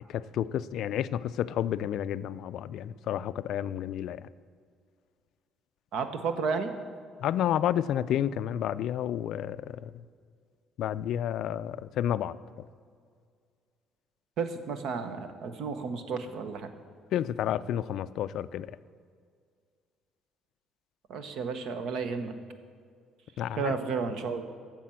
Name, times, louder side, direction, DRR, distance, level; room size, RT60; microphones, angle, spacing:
voice 1, 0.0-4.3 7.2-9.9 10.8-12.4 17.1-18.7 23.4-23.7, left 10 dB, 60° left, 15 dB, 0.3 m, -30 dB
voice 2, 5.9-6.7 14.4-16.7 21.1-22.3 23.6-24.4, right 5 dB, 55° right, 9 dB, 0.9 m, -32 dB
10.0 x 7.4 x 7.6 m, 2.1 s
cardioid pair, 165°, 0 cm